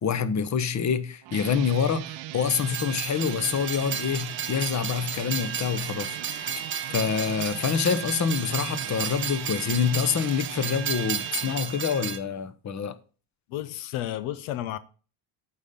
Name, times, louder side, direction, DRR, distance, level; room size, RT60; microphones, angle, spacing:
voice 1, 0.0-6.6 6.9-13.0, left 7 dB, 35° left, 1.0 m, -27 dB
sound 1, 1.2-11.6, right 16 dB, 65° right, 0.7 m, -39 dB
Train, 2.4-12.2, right 7 dB, 25° right, 1.0 m, -33 dB
voice 2, 13.5-14.8, left 13 dB, 85° left, 0.8 m, -32 dB
8.9 x 4.3 x 6.9 m
supercardioid pair, 75°, 47 cm